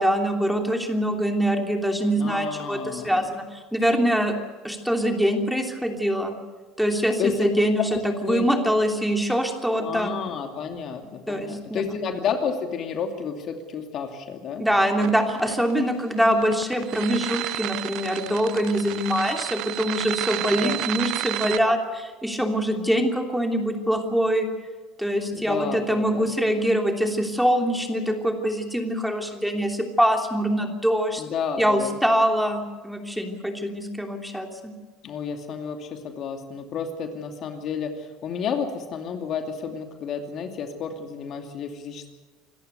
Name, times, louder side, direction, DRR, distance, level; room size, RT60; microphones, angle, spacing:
voice 1, 0.0-4.3 4.6-6.3 6.8-7.8 8.2-10.1 11.3-12.0 14.6-24.5 25.0-31.2 31.6-34.7, equal, ahead, 3 dB, 3.0 m, -24 dB
voice 2, 2.2-3.3 7.2-7.5 7.8-8.5 9.7-14.7 20.5-20.9 25.3-26.3 31.2-32.0 35.0-42.1, left 6 dB, 50° left, 5 dB, 2.6 m, -31 dB
sound 1, 15.0-21.6, right 17 dB, 60° right, 0.6 m, -31 dB
26.0 x 14.0 x 8.3 m, 1.3 s
hypercardioid pair, 80°, 0 cm